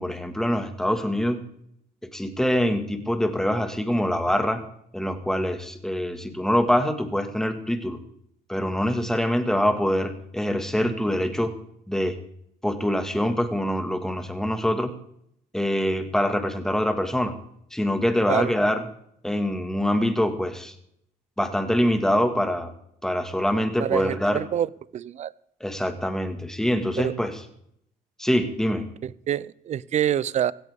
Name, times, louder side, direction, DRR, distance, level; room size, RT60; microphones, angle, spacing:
voice 1, 0.0-1.4 2.1-4.6 4.9-8.0 8.5-11.5 11.9-12.2 12.6-14.9 15.5-17.3 17.7-18.9 19.2-20.7 21.4-22.7 23.0-24.4 25.6-27.4 28.2-28.8, equal, 5° left, 7 dB, 1.8 m, -24 dB
voice 2, 23.8-24.7 24.9-25.3 27.0-27.1 29.0-30.5, right 10 dB, 45° right, 21 dB, 0.5 m, -26 dB
16.5 x 16.5 x 3.6 m, 0.72 s
cardioid pair, 110°, 17 cm